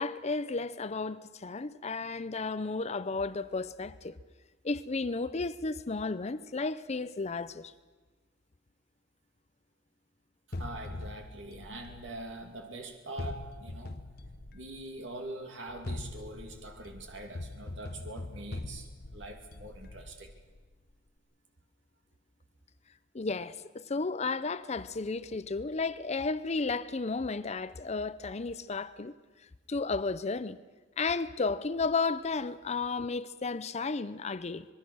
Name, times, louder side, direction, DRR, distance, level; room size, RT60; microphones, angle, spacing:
voice 1, 0.0-4.2 4.6-7.7 23.1-29.1 29.4-30.6 31.0-34.7, left 4 dB, 35° left, 0.6 m, -33 dB
sound 1, 10.5-12.7 13.2-15.0 15.7-20.8, left 2 dB, 55° left, 1.1 m, -42 dB
voice 2, 10.5-14.0 14.5-20.3, right 2 dB, 75° right, 2.6 m, -44 dB
25.5 x 21.0 x 6.4 m
head